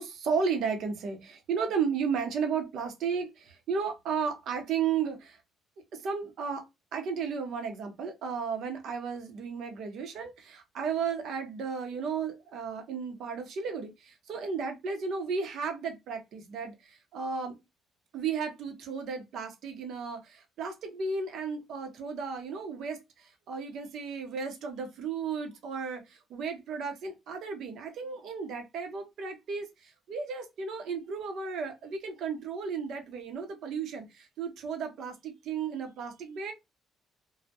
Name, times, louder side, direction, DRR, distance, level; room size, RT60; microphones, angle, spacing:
voice 1, 0.0-5.4 5.9-6.7 6.9-17.5 18.1-36.5, right 5 dB, 70° right, 0.7 m, -34 dB
2.2 x 2.1 x 2.7 m
cardioid pair, 120°, 0 cm